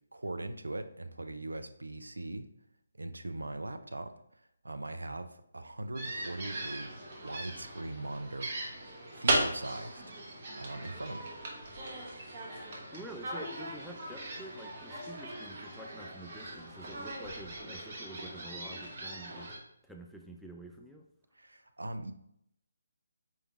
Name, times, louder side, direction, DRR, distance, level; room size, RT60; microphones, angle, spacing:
voice 1, 0.1-2.5 3.0-8.5 9.1-10.1 10.6-11.3 21.4-22.1, right 2 dB, 75° right, 9 dB, 0.4 m, -40 dB
sound 1, 5.9-19.6, right 1 dB, 40° right, 1.0 m, -38 dB
voice 2, 12.9-19.5 19.8-21.0, right 1 dB, ahead, 1 dB, 0.3 m, -48 dB
4.5 x 3.4 x 2.9 m, 0.75 s
figure-of-eight pair, 145°, 0 cm